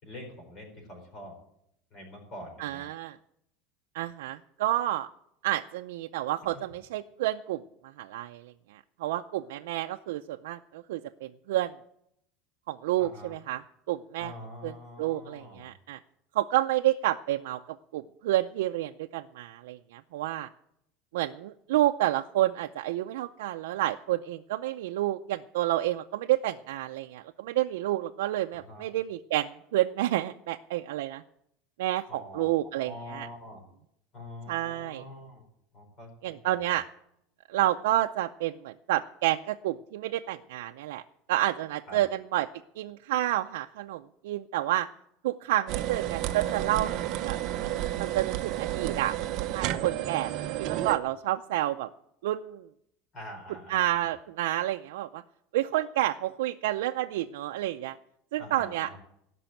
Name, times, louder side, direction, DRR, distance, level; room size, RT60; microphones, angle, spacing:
voice 1, 0.0-1.3 1.9-2.9 6.5-6.6 13.0-13.4 14.2-15.7 28.5-28.9 32.1-32.4 32.8-33.6 34.1-35.4 35.7-36.7 41.9-42.0 53.1-53.8 58.4-59.0, left 1 dB, 30° left, 3 dB, 4.5 m, -45 dB
voice 2, 2.6-3.1 3.9-5.1 5.4-7.6 8.0-11.7 12.7-13.6 13.9-14.3 14.6-14.7 15.0-16.0 16.4-20.5 21.1-31.2 31.8-33.3 34.5-35.0 36.2-36.8 37.5-41.0 41.3-42.5 42.8-44.9 45.2-47.4 47.6-50.3 50.6-51.9 52.2-52.7 53.7-55.2 55.5-58.0 58.3-58.9, right 14 dB, 90° right, 5 dB, 0.5 m, -29 dB
sound 1, 45.7-51.0, right 13 dB, 45° right, 0.8 m, -31 dB
16.0 x 6.1 x 9.1 m, 0.76 s
supercardioid pair, 170°, 0 cm